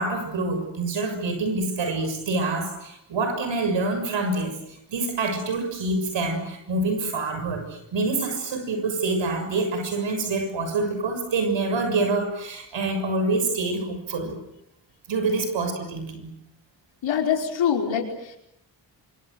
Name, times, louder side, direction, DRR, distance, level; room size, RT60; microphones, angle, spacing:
voice 1, 0.0-14.3 15.1-16.3, right 3 dB, 85° right, 7 dB, 6.6 m, -26 dB
voice 2, 17.0-18.4, left 8 dB, 90° left, 2 dB, 5.3 m, -24 dB
26.0 x 26.0 x 7.9 m, 0.81 s
cardioid pair, 75°, 44 cm